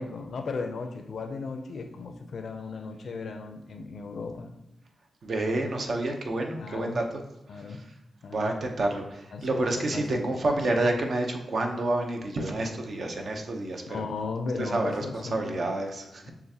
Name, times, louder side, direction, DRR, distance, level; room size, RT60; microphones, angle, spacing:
voice 1, 0.0-4.5 6.6-7.0 7.5-7.8 8.2-8.5 9.3-10.7 13.9-15.7 16.2-16.3, left 4 dB, 70° left, 6 dB, 0.4 m, -36 dB
voice 2, 5.2-7.0 7.5-7.8 8.3-14.0 14.6-16.3, right 2 dB, 65° right, 3 dB, 0.7 m, -29 dB
6.8 x 2.4 x 2.8 m, 0.88 s
cardioid pair, 55°, 0 cm